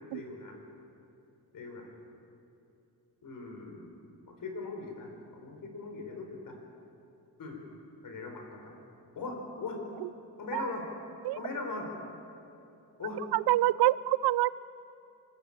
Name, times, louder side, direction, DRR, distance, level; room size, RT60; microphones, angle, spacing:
voice 1, 0.1-0.6 1.5-1.9 3.2-3.9 4.3-6.6 7.4-7.6 8.0-8.7 9.1-9.8 10.4-10.9 11.3-11.9 13.0-13.2, left 3 dB, 60° left, 3 dB, 4.5 m, -40 dB
voice 2, 13.3-14.5, right 15 dB, 90° right, 19 dB, 0.5 m, -26 dB
25.0 x 14.0 x 8.7 m, 2.7 s
cardioid pair, 105°, 37 cm